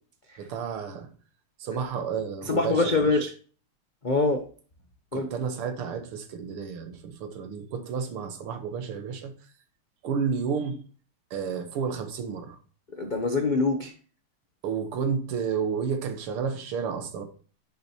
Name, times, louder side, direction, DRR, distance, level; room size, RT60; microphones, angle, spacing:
voice 1, 0.4-1.1 1.6-3.2 5.1-9.3 10.0-10.8 11.3-12.6 14.6-17.2, right 6 dB, 80° right, 2.1 m, -31 dB
voice 2, 2.5-3.3 4.0-4.4 5.1-5.3 13.0-13.9, left 3 dB, 75° left, 0.4 m, -24 dB
10.5 x 7.0 x 2.9 m
omnidirectional pair, 2.4 m